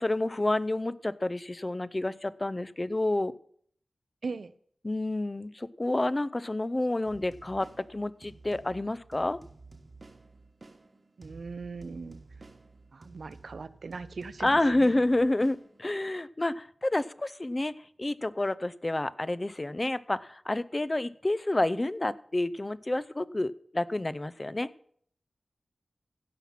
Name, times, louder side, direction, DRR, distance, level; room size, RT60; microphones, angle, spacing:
voice 1, 0.0-3.3 4.8-9.4 14.4-24.7, left 2 dB, 30° left, 17 dB, 0.5 m, -29 dB
voice 2, 4.2-4.5 11.2-12.5 12.9-15.0, right 4 dB, 75° right, 15 dB, 0.5 m, -40 dB
sound 1, 7.0-16.2, right 3 dB, 45° right, 1.1 m, -52 dB
16.0 x 5.9 x 5.7 m, 0.62 s
cardioid pair, 45°, 0 cm